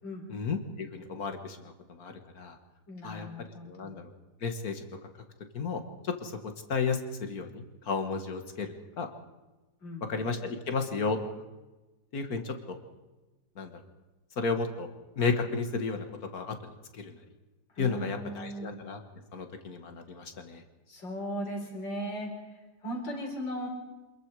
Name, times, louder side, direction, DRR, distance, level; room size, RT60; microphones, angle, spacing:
voice 1, 0.3-2.6 3.0-3.3 3.7-4.0 4.4-4.8 5.5-6.4 6.7-9.1 10.1-11.2 12.1-12.8 13.6-13.7 14.4-14.9 15.2-16.1 16.3-16.6 16.9-17.2 17.8-19.0 19.3-20.6, left 4 dB, 55° left, 6 dB, 2.1 m, -33 dB
voice 2, 2.9-4.0 9.8-10.1 17.7-18.7 20.9-22.3 22.8-23.7, equal, 85° left, 1 dB, 4.9 m, -37 dB
26.5 x 21.0 x 4.9 m, 1.1 s
omnidirectional pair, 2.0 m